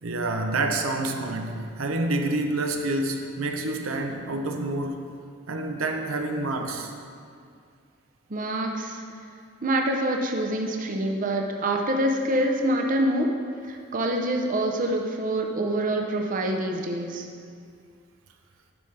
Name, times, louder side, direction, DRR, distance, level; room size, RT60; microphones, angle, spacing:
voice 1, 0.0-5.0 5.5-6.9, right 2 dB, 90° right, 4 dB, 0.6 m, -28 dB
voice 2, 8.3-9.0 9.6-13.3 13.6-17.3, right 1 dB, 40° right, 2 dB, 0.6 m, -26 dB
10.0 x 5.6 x 3.3 m, 2.3 s
head